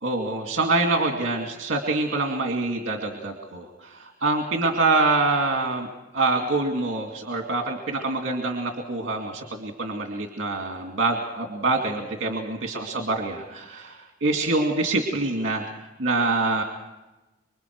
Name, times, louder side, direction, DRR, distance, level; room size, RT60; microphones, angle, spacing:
voice 1, 0.0-5.9 6.1-15.7 16.0-16.6, right 3 dB, 55° right, 2 dB, 2.4 m, -25 dB
26.5 x 23.5 x 4.7 m, 1.0 s
head